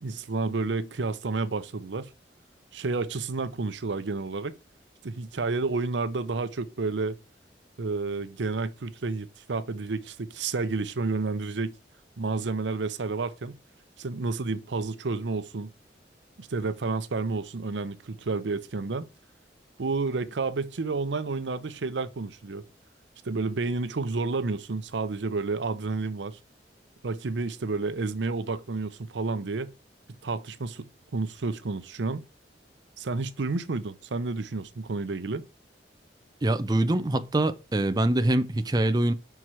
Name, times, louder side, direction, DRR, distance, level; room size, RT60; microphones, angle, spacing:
voice 1, 0.0-2.1 2.7-4.6 5.0-7.2 7.8-11.7 12.2-13.6 14.0-15.7 16.4-19.1 19.8-22.6 23.2-26.4 27.0-29.7 30.2-32.2 33.0-35.4, right 3 dB, 85° right, 0.6 m, -30 dB
voice 2, 36.4-39.1, right 1 dB, 20° right, 0.5 m, -24 dB
5.7 x 4.7 x 6.0 m
head